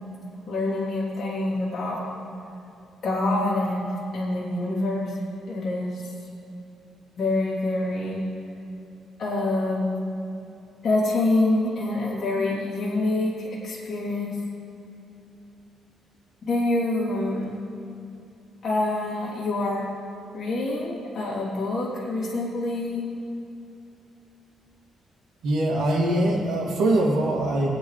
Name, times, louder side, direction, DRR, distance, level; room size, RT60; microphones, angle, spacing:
voice 1, 0.5-2.1 3.0-5.2 5.5-6.1 7.2-8.2 9.2-9.9 10.8-14.4 16.5-17.6 18.6-19.9 20.3-23.1, left 2 dB, 45° left, -7 dB, 3.1 m, -26 dB
voice 2, 25.4-27.7, right 1 dB, 75° right, -5 dB, 2.6 m, -22 dB
20.0 x 9.4 x 3.3 m, 2.7 s
cardioid pair, 130°, 0 cm